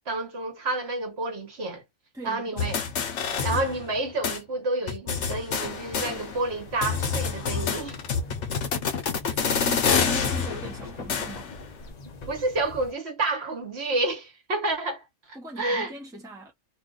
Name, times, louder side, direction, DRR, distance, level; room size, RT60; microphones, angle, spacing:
voice 1, 0.1-1.8 2.2-2.8 3.4-8.0 9.5-9.6 12.3-15.9, right 2 dB, 60° right, 1.3 m, -29 dB
voice 2, 2.1-2.7 9.3-11.5 15.3-16.5, right 1 dB, 5° right, 0.8 m, -39 dB
sound 1, 2.6-4.0 4.2-4.4 4.9-6.5 6.8-11.6, left 6 dB, 70° left, 1.1 m, -27 dB
sound 2, 5.6-12.9, left 3 dB, 40° left, 0.6 m, -43 dB
2.7 x 2.4 x 3.8 m
omnidirectional pair, 1.3 m